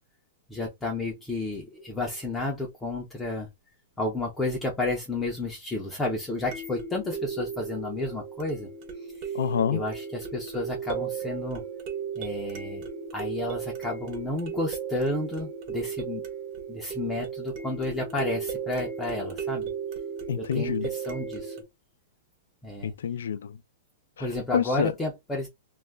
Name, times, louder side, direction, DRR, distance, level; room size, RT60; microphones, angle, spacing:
voice 1, 0.5-3.5 4.0-8.7 9.2-9.3 9.7-11.6 12.2-12.8 13.1-16.2 16.7-19.7 20.4-21.6 22.6-22.9 24.2-25.5, left 2 dB, 10° left, 0.5 m, -31 dB
sound 1, 1.8-1.9 6.5-21.6, right 7 dB, 35° right, 0.7 m, -35 dB
voice 2, 9.3-9.8 20.3-20.9 22.8-23.6 24.2-24.3 24.5-24.9, left 8 dB, 90° left, 0.3 m, -27 dB
2.3 x 2.1 x 3.2 m
hypercardioid pair, 165°, 0 cm